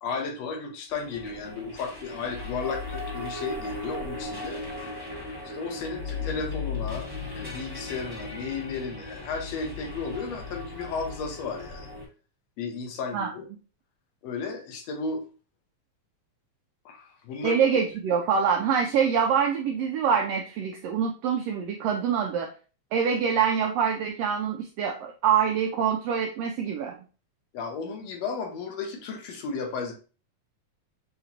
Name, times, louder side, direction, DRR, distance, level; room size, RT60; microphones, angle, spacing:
voice 1, 0.0-4.6 5.4-7.1 7.3-11.9 12.6-13.5 14.2-15.2 16.9-17.6 27.5-29.9, left 4 dB, 70° left, 3 dB, 2.0 m, -34 dB
sound 1, 0.9-12.0, left 3 dB, 40° left, 0.3 m, -37 dB
voice 2, 17.4-22.5 22.9-27.0, right 7 dB, 85° right, 2 dB, 1.4 m, -25 dB
6.8 x 2.9 x 2.7 m, 0.36 s
omnidirectional pair, 3.4 m